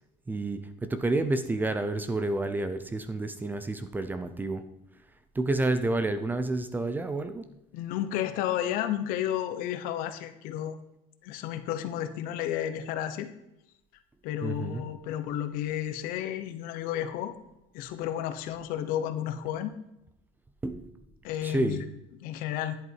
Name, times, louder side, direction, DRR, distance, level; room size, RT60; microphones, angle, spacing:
voice 1, 0.3-4.6 5.3-7.5 14.4-14.8 20.6-20.9 21.4-21.8, right 2 dB, 10° right, 10 dB, 0.6 m, -29 dB
voice 2, 7.7-10.8 11.2-13.3 14.2-17.4 17.7-19.8 21.2-21.8 22.2-22.8, left 11 dB, 65° left, 10 dB, 1.1 m, -32 dB
10.5 x 8.1 x 4.7 m, 0.85 s
cardioid pair, 155°, 16 cm